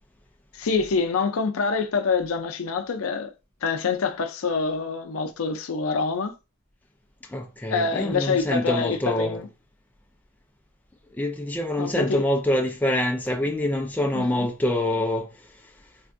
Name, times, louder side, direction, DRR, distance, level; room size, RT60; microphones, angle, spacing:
voice 1, 0.6-3.3 3.6-6.3 7.7-9.5 11.8-12.3 14.1-14.5, left 4 dB, 85° left, 0.5 m, -26 dB
voice 2, 7.3-9.4 11.2-15.3, left 1 dB, 10° left, 0.3 m, -25 dB
3.4 x 2.5 x 2.5 m
head